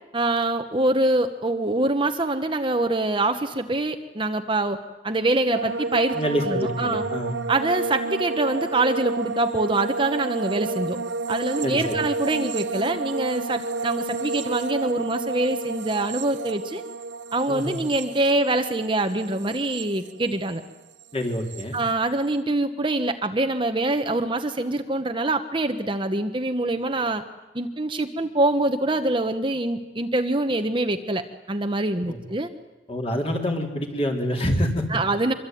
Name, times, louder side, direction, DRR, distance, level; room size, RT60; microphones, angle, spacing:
voice 1, 0.1-4.8 5.0-6.2 6.5-7.0 7.5-11.0 11.3-16.8 17.3-20.6 21.7-27.2 27.5-32.5 34.9-35.3, right 2 dB, 25° right, 7 dB, 1.1 m, -24 dB
sound 1, 5.5-20.7 21.0-21.6, right 3 dB, 75° right, 0.8 m, -31 dB
voice 2, 6.1-7.4 11.6-12.0 17.5-17.8 21.1-21.8 32.0-32.2 32.9-34.9, equal, 30° left, 2 dB, 3.9 m, -26 dB
25.0 x 24.5 x 9.4 m, 1.1 s
head